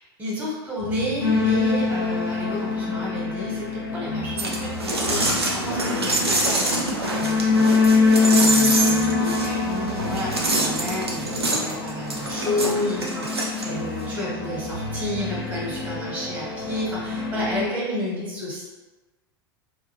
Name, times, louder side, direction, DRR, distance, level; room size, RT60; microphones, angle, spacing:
voice 1, 0.0-7.7 8.2-18.6, left 1 dB, 10° right, -6 dB, 1.2 m, -31 dB
sound 1, 0.8-3.6 4.0-8.2 8.8-12.9 13.6-17.6, left 1 dB, 30° left, 0.5 m, -39 dB
sound 2, 1.2-17.6, left 3 dB, 80° left, 0.7 m, -25 dB
sound 3, 4.4-14.1, right 2 dB, 80° right, 0.6 m, -26 dB
2.6 x 2.4 x 3.1 m, 1.2 s
figure-of-eight pair, 85°, 13 cm